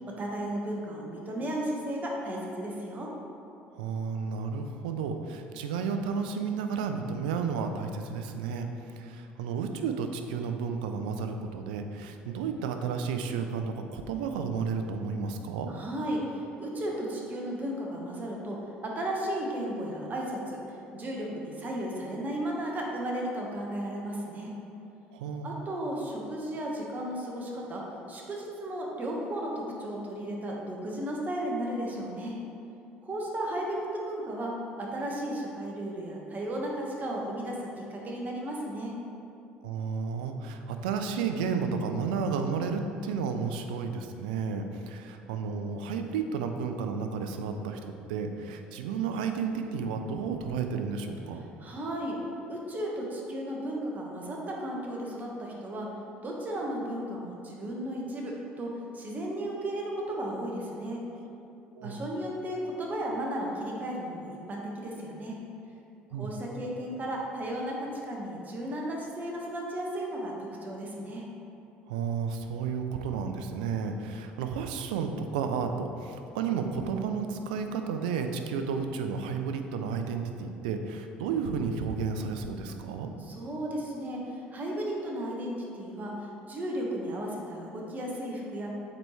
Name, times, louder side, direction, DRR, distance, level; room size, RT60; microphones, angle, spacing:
voice 1, 0.1-3.1 15.7-24.5 25.4-32.4 33.0-39.0 51.6-52.2 52.5-55.9 56.2-61.0 61.8-65.4 66.1-71.3 83.2-88.7, right 1 dB, 35° right, -2 dB, 1.3 m, -34 dB
voice 2, 3.7-15.7 25.1-25.5 39.6-51.5 61.7-62.0 66.1-66.3 71.9-83.1, right 5 dB, 85° right, 6 dB, 0.4 m, -32 dB
7.4 x 4.6 x 3.2 m, 2.7 s
hypercardioid pair, 70°, 5 cm